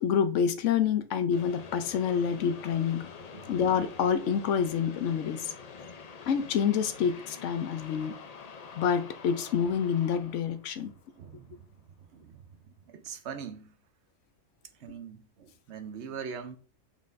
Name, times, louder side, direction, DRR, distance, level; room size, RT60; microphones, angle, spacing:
voice 1, 0.0-3.1 3.5-5.5 6.3-8.1 8.8-10.9, left 7 dB, 70° left, 0.9 m, -27 dB
sound 1, 1.3-11.6, left 5 dB, 50° left, 0.5 m, -47 dB
voice 2, 10.8-11.7 12.1-12.4 12.9-13.7 14.8-16.6, right 7 dB, 65° right, 0.9 m, -42 dB
6.5 x 5.6 x 2.6 m
omnidirectional pair, 1.4 m